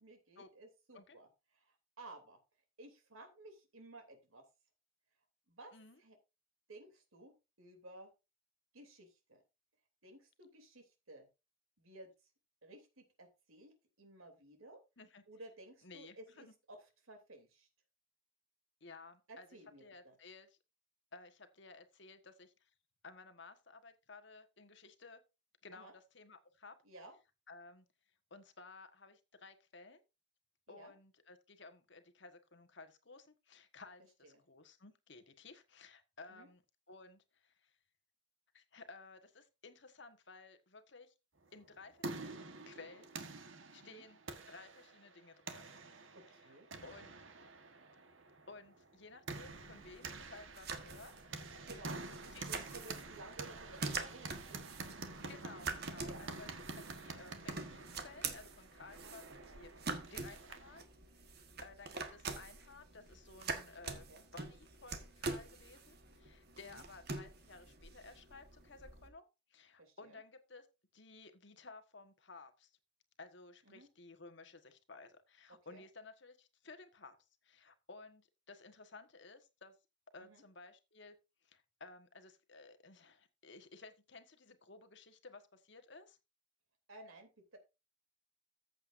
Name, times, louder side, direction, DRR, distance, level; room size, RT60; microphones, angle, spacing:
voice 1, 0.0-2.4 2.8-4.4 5.5-5.7 6.0-6.2 6.7-7.3 7.6-8.1 8.7-9.4 10.0-11.3 11.8-12.1 12.6-13.7 14.0-14.8 15.3-16.8 17.0-17.7 19.3-20.2 25.7-25.9 26.8-27.1 30.7-30.9 34.2-34.4 36.3-36.5 43.8-44.0 46.1-46.7 47.0-47.1 51.7-52.0 52.5-54.7 56.0-56.2 58.9-59.2 64.1-64.2 66.6-66.8 69.8-70.2 73.7-73.9 75.7-75.8 80.2-80.4 86.9-87.6, right 2 dB, 85° right, 5 dB, 3.1 m, -55 dB
voice 2, 15.8-16.5 18.8-19.5 19.8-20.5 21.1-22.7 23.0-25.2 25.6-26.8 27.5-27.8 28.3-30.0 30.7-36.6 36.9-37.7 38.5-41.1 41.5-43.1 43.5-45.7 46.4-46.6 46.8-47.1 48.5-51.1 51.4-51.7 52.3-52.9 55.3-56.5 56.7-60.9 61.3-69.2 69.5-70.7 70.9-72.7 73.2-77.2 77.4-79.7 80.1-81.2 81.4-86.2, left 3 dB, 55° left, 8 dB, 1.4 m, -56 dB
sound 1, 41.6-60.8, right 3 dB, 70° right, 1.4 m, -48 dB
sound 2, 49.5-69.1, right 4 dB, 50° right, 1.5 m, -46 dB
14.5 x 7.8 x 2.6 m, 0.27 s
head